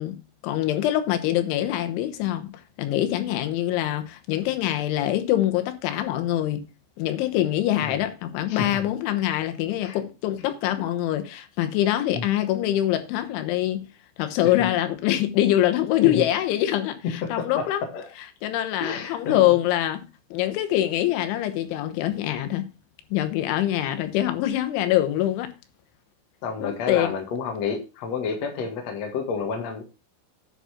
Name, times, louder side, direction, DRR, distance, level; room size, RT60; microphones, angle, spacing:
voice 1, 0.0-2.5 2.8-6.7 7.0-13.8 14.2-17.8 18.4-22.7 23.1-25.5 26.6-27.1, left 13 dB, 90° left, 3.5 m, -24 dB
voice 2, 8.5-8.8 9.8-10.0 12.1-12.3 14.5-14.7 16.0-16.2 17.0-18.1 18.8-19.5 26.4-29.8, left 5 dB, 50° left, 2.1 m, -30 dB
10.0 x 5.7 x 5.7 m
omnidirectional pair, 5.3 m